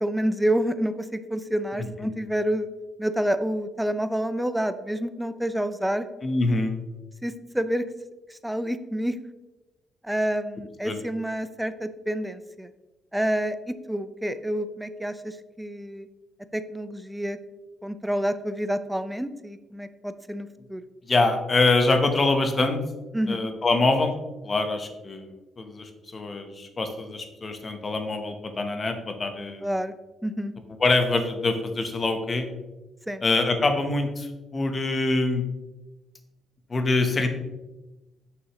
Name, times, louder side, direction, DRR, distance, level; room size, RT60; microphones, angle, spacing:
voice 1, 0.0-2.7 3.0-6.1 7.2-7.8 8.3-9.2 10.0-12.7 13.1-16.1 16.5-17.4 17.8-20.8 23.1-23.5 29.6-29.9 30.2-30.5 33.1-33.2, right 1 dB, 5° right, 11 dB, 0.4 m, -28 dB
voice 2, 1.8-2.1 6.2-6.7 10.8-11.0 21.1-22.8 23.3-24.1 24.4-25.3 25.6-29.7 30.8-32.5 33.2-35.4 36.7-37.3, left 2 dB, 35° left, 6 dB, 1.0 m, -24 dB
6.5 x 6.3 x 3.1 m, 1.1 s
cardioid pair, 90°, 0 cm